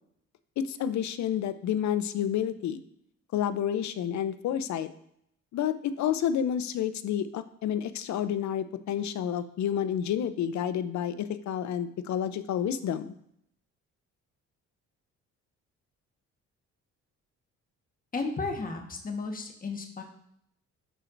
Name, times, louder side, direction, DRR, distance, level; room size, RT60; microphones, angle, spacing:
voice 1, 0.6-2.8 3.3-4.9 5.5-13.1, left 9 dB, 65° left, 12 dB, 0.6 m, -30 dB
voice 2, 18.1-20.0, left 3 dB, 30° left, 2 dB, 1.3 m, -34 dB
11.0 x 4.4 x 2.6 m, 0.72 s
cardioid pair, 90°, 30 cm